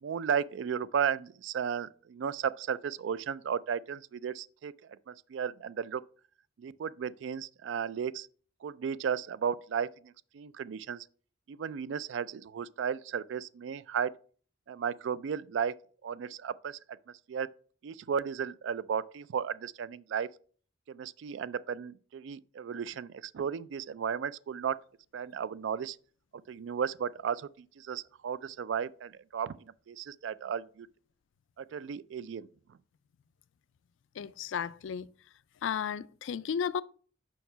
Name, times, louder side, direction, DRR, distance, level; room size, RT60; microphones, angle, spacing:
voice 1, 0.0-4.7 5.1-6.0 6.6-8.3 8.6-11.1 11.5-14.1 14.7-15.7 16.0-16.8 17.3-17.5 17.8-20.3 20.9-24.8 25.1-26.0 26.5-27.5 27.8-30.9 31.6-32.5, right 7 dB, 70° right, 0.3 m, -34 dB
voice 2, 34.2-35.1 35.6-36.8, left 7 dB, 80° left, 0.4 m, -33 dB
5.5 x 4.6 x 5.5 m
head